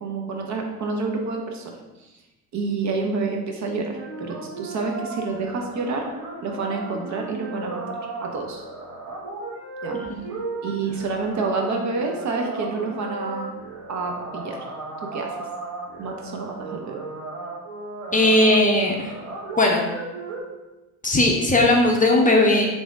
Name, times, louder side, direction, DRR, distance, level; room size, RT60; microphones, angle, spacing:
voice 1, 0.0-2.1 2.5-6.1 6.4-7.8 8.2-8.6 9.8-10.0 10.6-13.6 13.9-14.6 15.0-15.3 16.0-17.0, right 4 dB, 40° right, 2 dB, 0.7 m, -28 dB
sound 1, 3.9-20.4, right 3 dB, 80° right, 0.9 m, -35 dB
voice 2, 18.1-19.1 19.6-19.8 21.0-22.7, left 2 dB, 20° left, 0 dB, 0.6 m, -18 dB
3.4 x 2.6 x 3.4 m, 1.1 s
hypercardioid pair, 50°, 42 cm